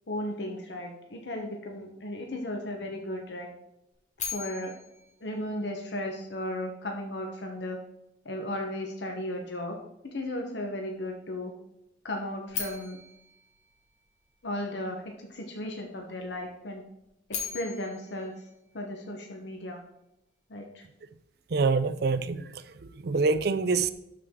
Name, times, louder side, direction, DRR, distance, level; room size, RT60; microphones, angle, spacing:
voice 1, 0.1-3.5 4.3-4.7 5.2-7.8 8.2-9.8 10.0-11.5 12.0-13.0 14.4-16.8 17.3-18.3 18.7-19.8 20.5-20.8, left 1 dB, 65° left, 2 dB, 0.9 m, -35 dB
sound 1, 4.2-6.3 12.5-14.7 17.0-19.4, left 6 dB, 40° left, 1.6 m, -40 dB
voice 2, 21.5-23.9, right 4 dB, 55° right, 13 dB, 0.5 m, -26 dB
12.0 x 4.6 x 3.7 m, 0.87 s
head